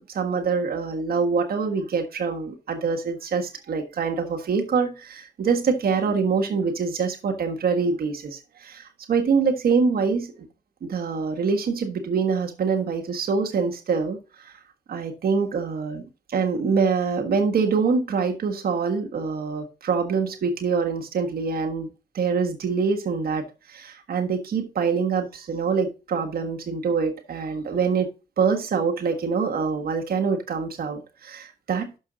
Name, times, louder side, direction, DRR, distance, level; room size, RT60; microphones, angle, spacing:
voice 1, 0.1-10.5 10.8-14.2 14.4-14.5 14.9-16.0 16.3-21.9 22.1-23.4 23.7-28.1 28.4-32.0, right 5 dB, 90° right, 3 dB, 1.5 m, -25 dB
6.6 x 5.5 x 5.0 m, 0.30 s
cardioid pair, 55°, 15 cm